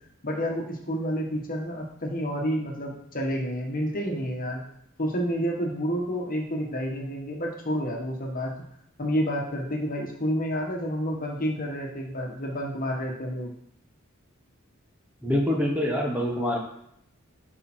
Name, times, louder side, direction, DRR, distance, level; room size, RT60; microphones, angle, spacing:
voice 1, 0.2-4.6 5.0-8.6 9.0-13.5, equal, 40° left, 0 dB, 1.7 m, -29 dB
voice 2, 15.2-16.6, left 1 dB, 5° right, -1 dB, 1.5 m, -25 dB
12.0 x 5.1 x 4.5 m, 0.73 s
head